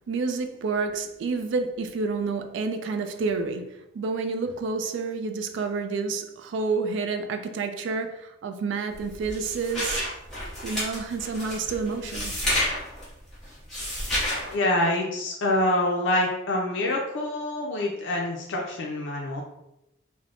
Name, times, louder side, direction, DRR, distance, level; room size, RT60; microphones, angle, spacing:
voice 1, 0.1-10.0 10.6-12.4, right 4 dB, 75° right, 0.3 m, -29 dB
sound 1, 8.9-14.5, left 1 dB, ahead, 0.9 m, -30 dB
voice 2, 14.5-19.4, left 1 dB, 80° left, 0.4 m, -26 dB
3.3 x 2.1 x 2.4 m
head